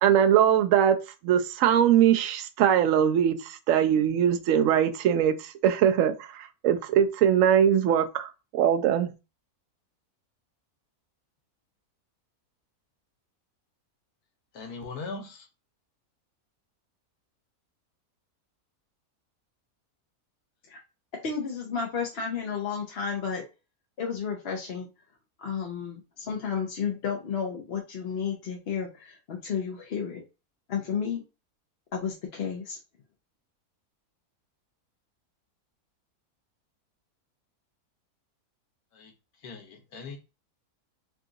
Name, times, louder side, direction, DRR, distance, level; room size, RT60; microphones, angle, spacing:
voice 1, 0.0-1.0 1.2-9.1, right 9 dB, 70° right, 0.9 m, -22 dB
voice 2, 14.5-15.5 38.9-39.1 39.4-40.2, left 4 dB, 85° left, 1.5 m, -39 dB
voice 3, 21.2-23.4 24.0-24.9 25.4-30.2 30.7-31.2 31.9-32.8, left 6 dB, 50° left, 0.8 m, -32 dB
3.7 x 2.4 x 3.8 m
omnidirectional pair, 1.6 m